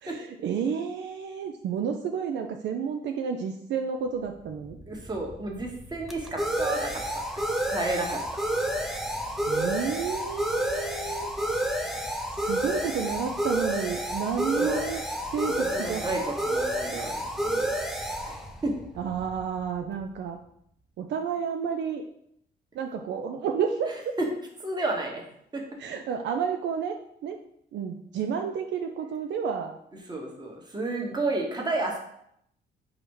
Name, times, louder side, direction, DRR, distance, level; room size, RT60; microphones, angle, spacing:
voice 1, 0.0-4.8 9.4-11.3 12.4-15.0 15.3-16.0 19.0-20.4 21.0-22.0 22.8-24.1 25.8-27.0 27.2-27.4 27.7-29.7, right 6 dB, 65° right, 4 dB, 0.4 m, -31 dB
sound 1, 4.5-19.9, right 1 dB, ahead, 0.4 m, -30 dB
voice 2, 4.9-8.3 14.5-14.9 15.4-17.8 18.2-18.8 24.2-24.3 24.6-25.2 25.5-25.7 30.1-32.0, right 2 dB, 20° right, 0 dB, 1.0 m, -32 dB
4.9 x 2.1 x 4.6 m, 0.73 s
cardioid pair, 90°, 20 cm